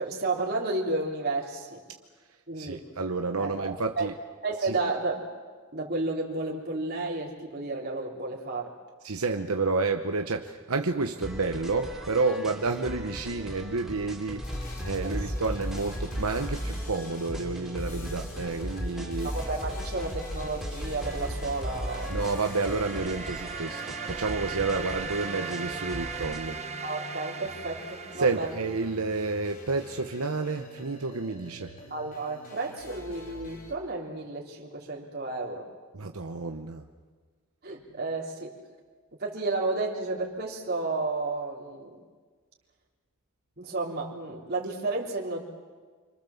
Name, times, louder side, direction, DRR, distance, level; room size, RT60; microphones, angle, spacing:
voice 1, 0.0-1.8 2.5-2.8 3.4-4.1 4.4-5.2 5.7-8.7 15.0-15.4 19.2-22.1 26.8-28.6 31.9-35.6 37.6-38.5 39.2-42.0 43.6-45.4, right 3 dB, 45° right, -3 dB, 3.5 m, -32 dB
voice 2, 2.6-4.1 4.7-4.8 9.0-14.5 14.8-19.3 22.1-26.6 28.2-31.7 35.9-36.8, right 3 dB, 75° right, 5 dB, 1.1 m, -30 dB
sound 1, 11.2-26.4, equal, ahead, 3.4 m, -40 dB
sound 2, 14.4-33.7, equal, 40° left, 5.7 m, -39 dB
sound 3, 21.4-29.2, right 6 dB, 30° right, 1.3 m, -39 dB
27.0 x 26.0 x 7.2 m, 1.5 s
head